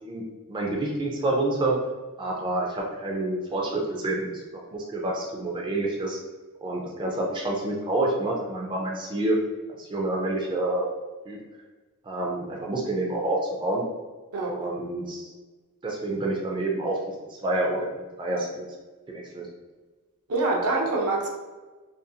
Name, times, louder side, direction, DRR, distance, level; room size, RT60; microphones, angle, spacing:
voice 1, 0.5-1.8 2.2-4.3 4.7-6.2 6.6-9.4 9.8-10.9 11.3-11.4 12.0-13.8 14.5-15.3 15.8-17.1 17.4-18.7 19.1-19.5, right 2 dB, 20° right, -2 dB, 0.3 m, -28 dB
voice 2, 20.3-21.3, right 2 dB, 75° right, -1 dB, 0.6 m, -25 dB
2.5 x 2.3 x 2.7 m, 1.3 s
head